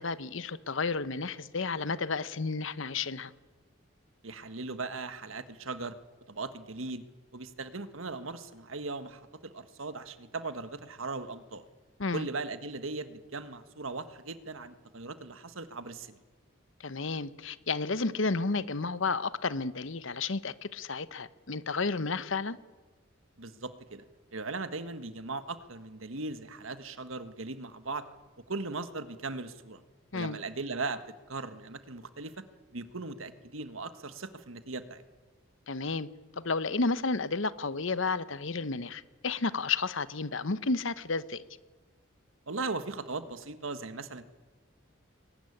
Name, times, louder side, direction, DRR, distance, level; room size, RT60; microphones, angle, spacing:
voice 1, 0.0-3.3 12.0-12.3 16.8-22.6 30.1-30.4 35.7-36.1 36.4-41.4, left 4 dB, 70° left, 15 dB, 1.0 m, -32 dB
voice 2, 4.2-5.9 6.3-7.0 7.3-11.6 12.1-16.2 23.4-24.0 24.3-28.0 28.5-29.8 30.1-31.0 31.3-32.3 32.7-35.0 42.5-44.2, right 3 dB, 80° right, 10 dB, 1.5 m, -38 dB
22.5 x 19.5 x 9.9 m, 1.3 s
head